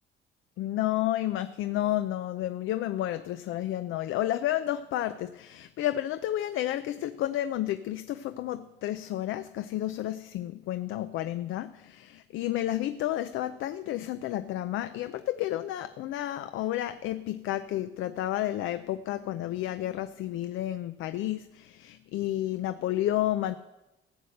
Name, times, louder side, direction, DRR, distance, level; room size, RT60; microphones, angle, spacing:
voice 1, 0.6-23.5, left 13 dB, 85° left, 11 dB, 0.5 m, -31 dB
15.5 x 7.9 x 6.5 m, 1.0 s
cardioid pair, 90°, 20 cm